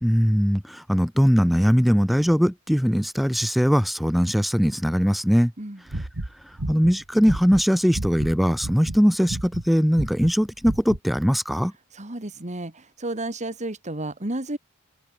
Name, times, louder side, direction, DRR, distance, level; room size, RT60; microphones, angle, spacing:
voice 1, 0.0-5.5 6.7-11.7, equal, ahead, 0.7 m, -20 dB
sound 1, 5.9-8.4 8.6-9.0 9.3-9.7 9.9-10.3 10.6-11.0, right 1 dB, 70° right, 1.9 m, -31 dB
voice 2, 11.9-14.6, right 1 dB, 35° right, 2.5 m, -32 dB
head